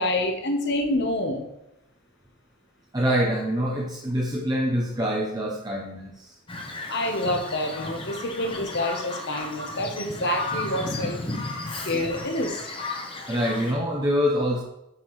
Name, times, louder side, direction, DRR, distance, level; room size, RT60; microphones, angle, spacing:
voice 1, 0.0-1.5 6.9-11.2 11.8-12.6, left 1 dB, 55° left, 4 dB, 1.0 m, -27 dB
voice 2, 2.9-6.3 13.3-14.6, equal, 20° right, -2 dB, 0.7 m, -25 dB
Bird vocalization bird call bird song, 6.5-13.7, left 2 dB, 25° left, 0.9 m, -34 dB
7.8 x 5.8 x 3.2 m, 0.85 s
head